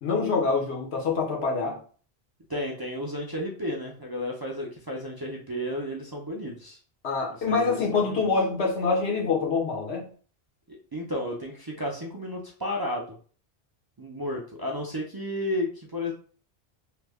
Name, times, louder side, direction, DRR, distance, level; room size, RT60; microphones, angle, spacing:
voice 1, 0.0-1.8 7.0-10.0, left 4 dB, 90° left, -1 dB, 1.2 m, -25 dB
voice 2, 2.5-6.8 7.5-8.3 10.7-13.2 14.0-16.1, left 1 dB, 35° right, -2 dB, 0.4 m, -33 dB
3.1 x 2.1 x 3.4 m, 0.43 s
omnidirectional pair, 1.1 m